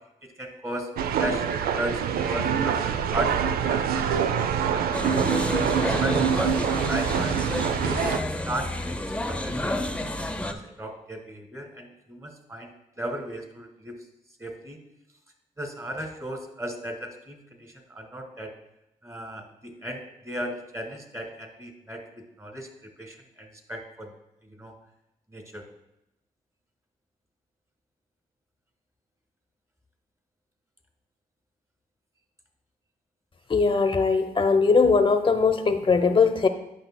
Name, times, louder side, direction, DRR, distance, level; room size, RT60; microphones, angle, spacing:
voice 1, 0.4-0.9 1.2-1.4 1.7-2.8 3.1-5.2 5.8-8.0 8.4-9.0 9.3-9.8 10.3-12.7 13.0-13.9 14.4-14.8 15.6-18.5 19.0-22.0 22.4-22.7 23.0-24.1 24.4-24.7 25.3-25.6, right 1 dB, 20° right, 4 dB, 1.7 m, -36 dB
sound 1, 1.0-8.2, right 8 dB, 80° right, 0.4 m, -25 dB
sound 2, 4.9-10.5, left 1 dB, 10° left, 0.7 m, -30 dB
voice 2, 33.5-36.5, left 4 dB, 35° left, 7 dB, 0.9 m, -20 dB
10.0 x 5.4 x 2.2 m, 0.86 s
supercardioid pair, 50°, 15 cm